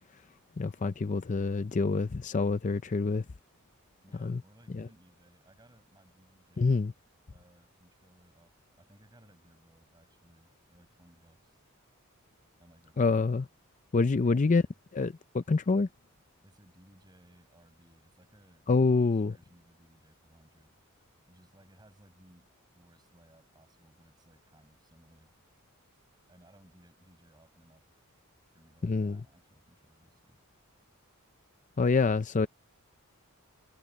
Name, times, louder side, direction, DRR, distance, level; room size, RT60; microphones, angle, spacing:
voice 1, 0.6-3.2 4.2-4.4 4.7-4.9 6.6-6.9 13.0-13.5 13.9-14.6 14.9-15.9 18.7-19.4 28.8-29.2 31.8-32.5, left 4 dB, 35° left, 0.5 m, -26 dB
voice 2, 4.0-6.9 7.3-11.6 12.6-13.2 14.1-14.5 16.4-20.8 21.3-25.3 26.3-27.9 28.5-30.4, right 1 dB, 20° right, 7.1 m, -61 dB
head